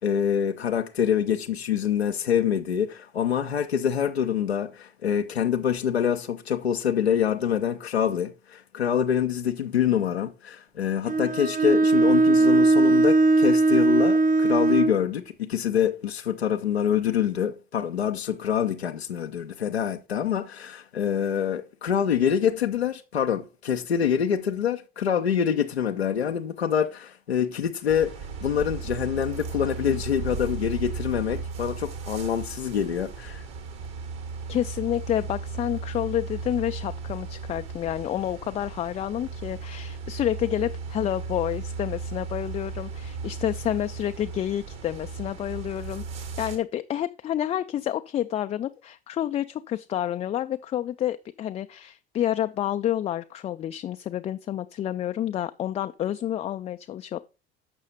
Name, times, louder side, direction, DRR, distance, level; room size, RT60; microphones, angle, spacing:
voice 1, 0.0-28.1 28.4-33.4, left 8 dB, 85° left, 0.6 m, -26 dB
Bowed string instrument, 11.1-15.0, right 2 dB, 25° right, 0.7 m, -19 dB
sound 1, 27.9-46.6, right 5 dB, 55° right, 2.0 m, -36 dB
voice 2, 34.5-57.2, left 11 dB, 20° left, 0.3 m, -29 dB
7.4 x 5.6 x 5.1 m
figure-of-eight pair, 65°, 31 cm